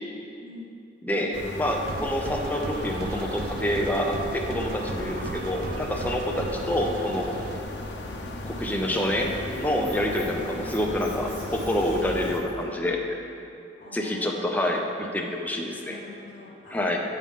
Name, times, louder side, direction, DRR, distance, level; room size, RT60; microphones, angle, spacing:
voice 1, 0.4-0.8 13.8-14.8 15.8-16.8, left 2 dB, 40° left, -11 dB, 2.1 m, -45 dB
voice 2, 1.0-7.4 8.4-9.3 9.6-13.2 13.9-16.0 16.7-17.0, left 1 dB, 10° left, 1 dB, 0.7 m, -27 dB
sound 1, 1.3-12.4, left 1 dB, 75° left, 1.0 m, -36 dB
sound 2, 1.6-7.6, right 3 dB, 55° right, 0.4 m, -36 dB
Squeak, 8.4-12.6, right 1 dB, 30° right, 1.8 m, -48 dB
13.0 x 5.6 x 3.7 m, 2.6 s
head